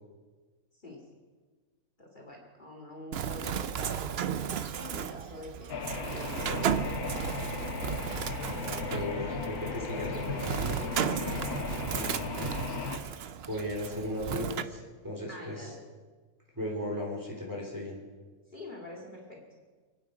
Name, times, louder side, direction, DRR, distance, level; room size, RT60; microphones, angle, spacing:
voice 1, 0.7-1.0 2.0-5.7 6.1-7.0 11.5-11.9 15.3-15.8 18.5-19.4, left 1 dB, 35° left, -1 dB, 2.4 m, -46 dB
Bird, 3.1-14.6, right 8 dB, 55° right, 0.7 m, -35 dB
sound 1, 5.7-13.0, left 4 dB, 85° left, 1.8 m, -36 dB
voice 2, 8.6-10.8 11.9-12.6 13.5-15.7 16.5-18.0, left 1 dB, 15° right, -2 dB, 3.2 m, -37 dB
27.5 x 9.4 x 5.1 m, 1.4 s
omnidirectional pair, 1.5 m